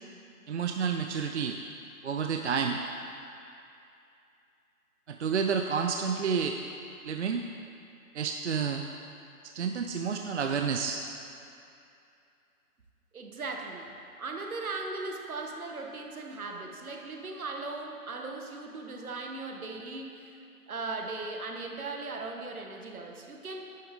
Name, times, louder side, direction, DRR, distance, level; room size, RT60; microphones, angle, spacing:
voice 1, 0.5-1.6 2.0-2.8 5.1-6.6 7.0-7.4 8.1-8.8 9.4-11.0, right 6 dB, 50° right, 4 dB, 0.5 m, -30 dB
voice 2, 13.1-13.9 14.2-20.4 20.7-23.6, right 3 dB, 70° right, 2 dB, 1.4 m, -38 dB
11.0 x 8.1 x 3.7 m, 2.6 s
figure-of-eight pair, 150°, 44 cm